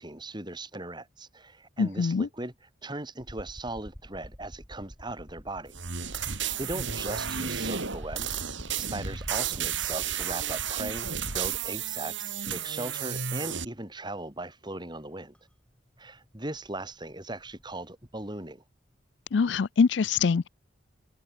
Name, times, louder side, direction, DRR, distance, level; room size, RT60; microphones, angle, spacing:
voice 1, 0.0-5.7 6.1-8.4 8.8-15.3 16.0-18.6, right 2 dB, 20° right, 2.9 m, -38 dB
voice 2, 1.8-2.3 19.3-20.5, left 5 dB, 60° left, 0.4 m, -24 dB
sound 1, 3.2-12.0 13.1-13.2 15.3-15.4 15.7-18.2, equal, 5° left, 3.3 m, -45 dB
sound 2, 5.7-13.6, right 8 dB, 65° right, 3.6 m, -32 dB
open air
head